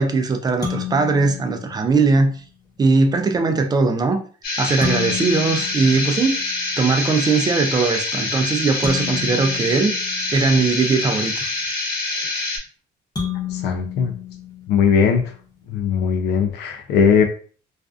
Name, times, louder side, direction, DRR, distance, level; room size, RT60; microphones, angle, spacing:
voice 1, 0.0-2.3 2.8-4.2 4.6-6.4 6.8-9.9 10.3-11.5, right 4 dB, 25° right, 0.4 m, -19 dB
sound 1, 0.6-2.3 4.8-6.8 8.8-11.0 13.2-15.2, left 7 dB, 20° left, 0.9 m, -32 dB
sound 2, 4.4-12.6, left 2 dB, 60° left, 0.9 m, -25 dB
voice 2, 13.6-14.1 14.7-15.2 15.7-17.2, left 6 dB, 80° left, 0.4 m, -18 dB
2.5 x 2.2 x 2.4 m
cardioid pair, 110°, 17 cm